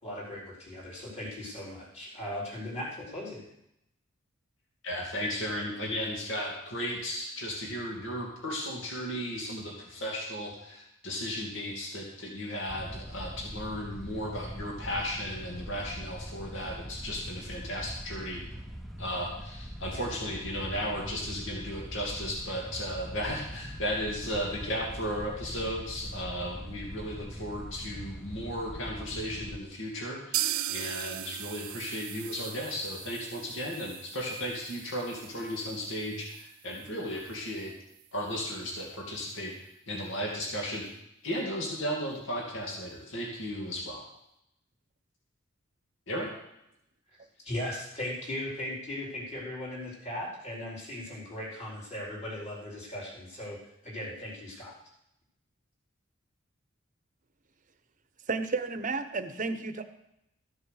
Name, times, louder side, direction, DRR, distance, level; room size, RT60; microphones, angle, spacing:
voice 1, 0.0-3.4 47.4-53.6 53.8-54.7, left 1 dB, 30° left, -5 dB, 4.4 m, -38 dB
voice 2, 4.8-18.4 19.0-37.7 38.1-39.5 39.9-40.8 41.2-44.0 46.1-46.3, equal, 65° left, -1 dB, 2.5 m, -35 dB
sound 1, 12.7-29.6, equal, ahead, 0.7 m, -42 dB
sound 2, 30.3-38.1 38.4-38.5 38.8-38.9 39.3-39.4, right 13 dB, 80° right, 0.6 m, -39 dB
voice 3, 58.3-59.8, right 4 dB, 40° right, 9 dB, 0.9 m, -32 dB
14.0 x 7.7 x 6.5 m, 0.81 s
head